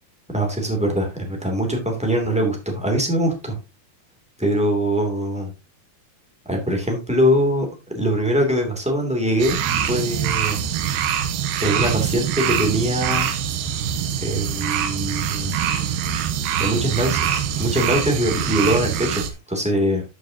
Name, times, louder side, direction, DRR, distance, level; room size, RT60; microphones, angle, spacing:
voice 1, 0.3-3.6 4.4-5.5 6.4-7.7 7.9-9.6 9.9-10.6 11.6-13.2 14.2-15.5 16.6-20.0, equal, ahead, 1 dB, 1.7 m, -22 dB
sound 1, 9.4-19.3, right 9 dB, 75° right, 2.5 m, -24 dB
13.5 x 6.4 x 2.8 m, 0.26 s
omnidirectional pair, 4.6 m